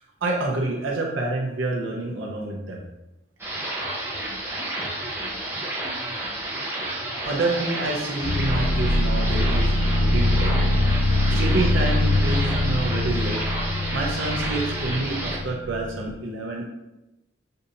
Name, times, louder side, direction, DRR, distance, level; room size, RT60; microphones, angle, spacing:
voice 1, 0.2-2.8 7.2-10.7 11.1-13.4 13.9-16.7, right 2 dB, 85° right, -1 dB, 0.8 m, -28 dB
sound 1, 3.4-15.4, right 1 dB, 10° right, 0.7 m, -31 dB
sound 2, 8.2-16.1, left 1 dB, 45° left, 0.3 m, -23 dB
6.5 x 2.7 x 2.7 m, 0.96 s
head